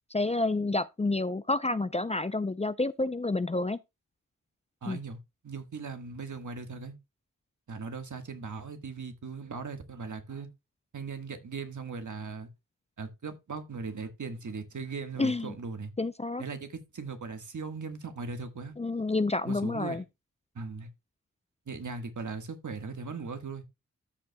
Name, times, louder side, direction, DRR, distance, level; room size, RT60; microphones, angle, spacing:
voice 1, 0.1-3.8 4.9-5.0 15.2-15.5 16.0-16.4 18.8-20.0, left 2 dB, 20° left, 0.5 m, -29 dB
voice 2, 4.8-6.9 7.7-10.5 10.9-12.5 13.0-15.9 16.4-18.7 19.4-20.0 20.5-20.9 21.7-23.6, right 4 dB, 65° right, 1.5 m, -39 dB
13.5 x 6.7 x 2.2 m
cardioid pair, 45°, 33 cm